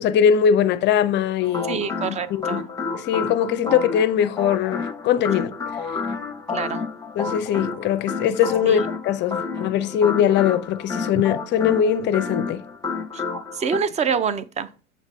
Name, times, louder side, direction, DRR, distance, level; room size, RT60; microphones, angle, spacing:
voice 1, 0.0-2.7 2.9-5.6 7.1-12.6, left 8 dB, 30° left, 0.6 m, -21 dB
sound 1, 1.4-13.8, left 4 dB, 10° left, 1.0 m, -30 dB
voice 2, 1.7-2.6 6.5-6.8 8.6-8.8 13.1-13.2 13.5-14.7, right 6 dB, 20° right, 0.6 m, -26 dB
7.3 x 3.1 x 5.3 m
figure-of-eight pair, 85°, 38 cm